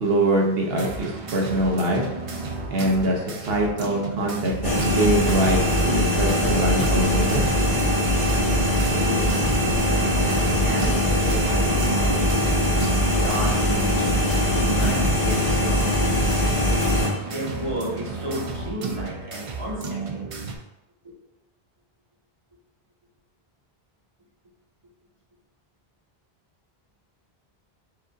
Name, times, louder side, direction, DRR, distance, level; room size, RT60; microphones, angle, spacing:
voice 1, 0.0-2.0 2.7-7.5, right 1 dB, 75° right, 0 dB, 1.1 m, -23 dB
sound 1, 0.7-20.6, right 3 dB, 45° right, 0.5 m, -33 dB
sound 2, 4.6-17.1, left 1 dB, 60° left, 1.5 m, -21 dB
voice 2, 8.7-9.9 10.4-12.4 13.0-16.0 17.0-20.2 21.0-21.1, right 1 dB, 30° right, -5 dB, 1.3 m, -33 dB
4.7 x 2.5 x 3.9 m, 0.94 s
omnidirectional pair, 1.0 m